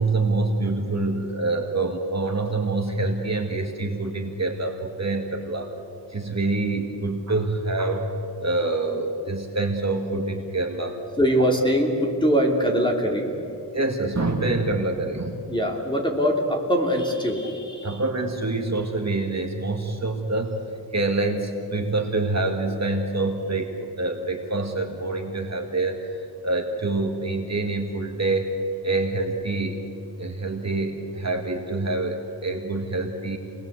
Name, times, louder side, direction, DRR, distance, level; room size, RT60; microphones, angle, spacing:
voice 1, 0.0-5.7 6.1-8.1 8.4-11.0 13.7-15.4 17.8-20.6 20.9-28.5 28.8-29.8 30.2-33.4, right 2 dB, 40° right, 2 dB, 2.1 m, -26 dB
voice 2, 11.2-13.3 15.5-18.0, equal, 10° left, 0 dB, 3.2 m, -22 dB
26.5 x 20.0 x 8.1 m, 2.7 s
wide cardioid pair, 105°, 42 cm